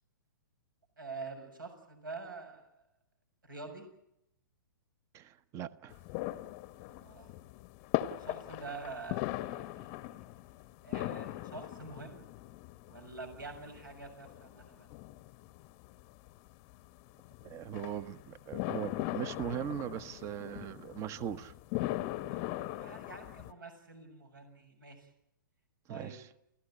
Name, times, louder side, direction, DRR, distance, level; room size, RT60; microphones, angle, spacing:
voice 1, 1.0-2.8 3.4-3.9 6.8-7.3 8.2-10.0 10.8-12.2 12.9-14.9 22.1-25.1 25.9-26.2, right 3 dB, 75° right, 6.8 m, -46 dB
voice 2, 5.1-6.0 17.4-21.5 25.9-26.3, right 10 dB, 25° right, 1.0 m, -39 dB
sound 1, 5.9-23.5, left 16 dB, 35° left, 0.9 m, -40 dB
29.5 x 15.5 x 8.8 m
figure-of-eight pair, 115°, 11 cm